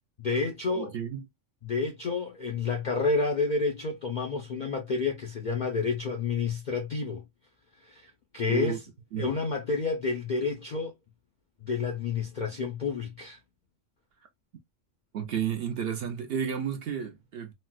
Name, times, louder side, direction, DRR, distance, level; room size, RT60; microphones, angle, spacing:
voice 1, 0.2-0.9 1.6-7.2 7.8-8.1 8.3-8.8 9.2-10.9 11.6-13.4, left 4 dB, 60° left, 0.4 m, -29 dB
voice 2, 0.7-1.3 8.5-8.8 9.1-9.3 15.1-17.5, right 8 dB, 60° right, 0.7 m, -32 dB
4.2 x 2.0 x 2.3 m
omnidirectional pair, 1.4 m